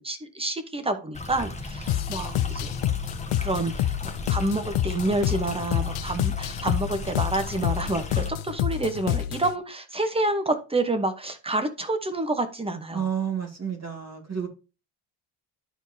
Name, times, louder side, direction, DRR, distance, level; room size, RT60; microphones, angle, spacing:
voice 1, 0.0-2.8 3.4-13.0, right 2 dB, 10° right, 8 dB, 1.0 m, -28 dB
Stream, 1.1-8.3, left 2 dB, 15° left, 1.1 m, -37 dB
sound 1, 1.9-9.5, left 13 dB, 85° left, 0.6 m, -28 dB
voice 2, 12.9-14.5, right 8 dB, 35° right, 2 dB, 2.2 m, -30 dB
12.5 x 4.4 x 2.7 m, 0.31 s
wide cardioid pair, 145°, 48 cm